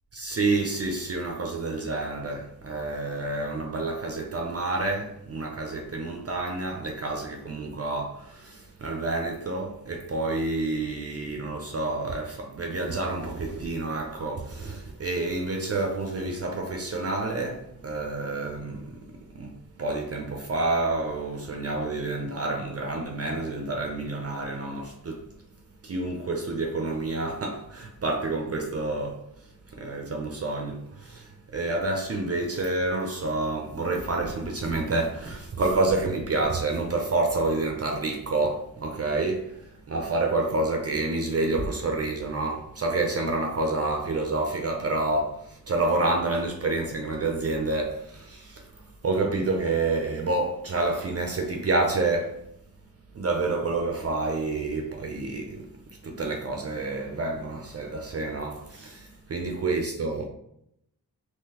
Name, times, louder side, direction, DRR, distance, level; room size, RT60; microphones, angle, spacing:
voice 1, 0.1-25.3 25.8-52.4 53.1-55.7 56.0-60.3, right 2 dB, 40° right, 0.5 m, -29 dB
3.7 x 2.9 x 2.8 m
wide cardioid pair, 145°, 38 cm